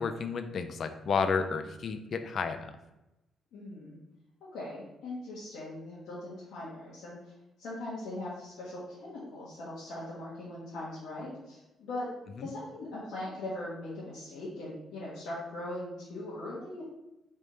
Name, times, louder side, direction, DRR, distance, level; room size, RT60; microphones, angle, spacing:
voice 1, 0.0-2.7 12.4-12.5, left 5 dB, 55° left, 9 dB, 0.4 m, -31 dB
voice 2, 3.5-4.0 4.5-7.2 7.6-16.9, left 1 dB, 85° left, -8 dB, 1.2 m, -40 dB
3.4 x 2.8 x 4.6 m, 0.96 s
cardioid pair, 90°, 0 cm